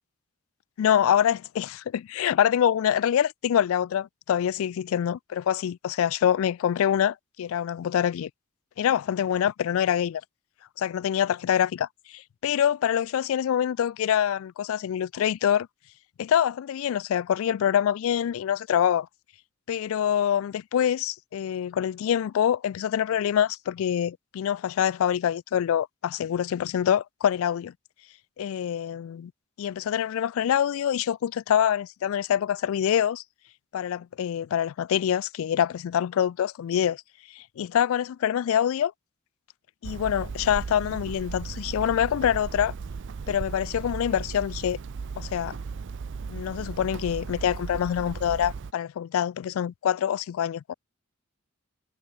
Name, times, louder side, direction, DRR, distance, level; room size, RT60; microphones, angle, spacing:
voice 1, 0.8-8.3 8.8-10.2 10.8-15.7 16.2-19.1 19.7-27.7 28.4-29.3 29.6-33.2 33.7-37.0 37.4-38.9 39.8-42.7 43.3-44.8 45.2-45.6 46.3-50.7, left 9 dB, 65° left, 0.3 m, -25 dB
Hammer, 39.8-48.7, right 5 dB, 60° right, 0.5 m, -36 dB
head